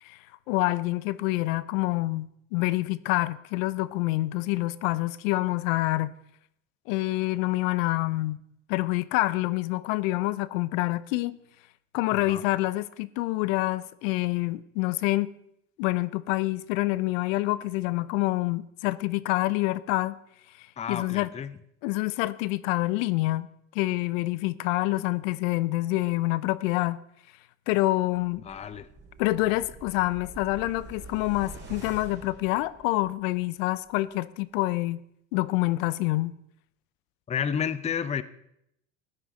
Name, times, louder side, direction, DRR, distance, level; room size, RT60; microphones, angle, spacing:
voice 1, 0.5-6.1 6.9-8.4 8.7-11.4 11.9-15.3 15.8-20.2 20.6-21.3 21.8-23.5 23.7-27.0 27.7-28.5 29.2-35.0 35.3-36.3, left 19 dB, 75° left, 0.6 m, -27 dB
voice 2, 12.1-12.4 20.8-21.5 28.4-28.9 37.3-38.2, left 7 dB, 15° left, 0.5 m, -31 dB
sound 1, 28.1-33.3 33.7-33.8, right 3 dB, 25° right, 4.6 m, -46 dB
14.5 x 9.4 x 4.0 m
supercardioid pair, 95°, 40 cm